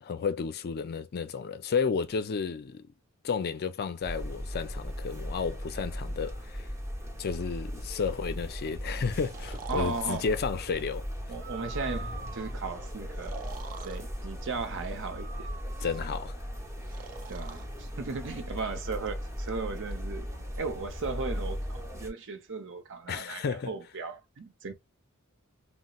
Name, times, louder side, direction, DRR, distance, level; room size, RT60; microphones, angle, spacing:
voice 1, 0.0-2.9 3.2-6.7 7.2-11.1 15.8-16.3 23.1-23.7, left 5 dB, 45° left, 0.4 m, -32 dB
sound 1, 4.0-22.1, equal, 15° right, 0.8 m, -38 dB
Breathing, 9.2-10.3 11.3-12.6 13.1-14.0 15.0-16.2 16.9-17.7, right 6 dB, 40° right, 0.3 m, -45 dB
voice 2, 9.7-10.3 11.3-13.5 13.8-15.5 17.3-20.3 20.6-24.7, right 4 dB, 60° right, 0.7 m, -36 dB
4.0 x 2.0 x 2.3 m
head